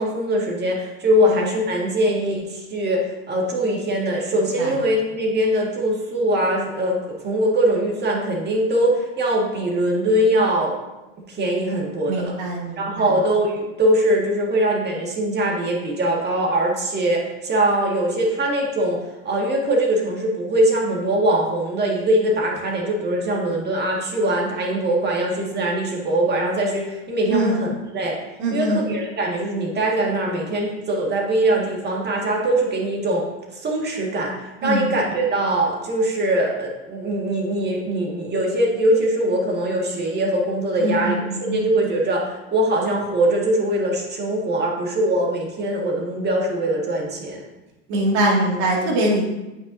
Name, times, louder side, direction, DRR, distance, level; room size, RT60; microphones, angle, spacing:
voice 1, 0.0-10.7 11.3-12.2 12.8-19.0 19.2-28.2 28.5-33.2 33.5-34.3 34.6-47.5, right 1 dB, 30° right, -1 dB, 1.9 m, -22 dB
voice 2, 12.1-13.1 27.3-27.5 28.4-28.8 34.6-34.8 40.8-41.7 47.9-49.2, right 1 dB, 60° right, -2 dB, 2.3 m, -22 dB
8.8 x 5.8 x 2.7 m, 1.0 s
supercardioid pair, 105°, 33 cm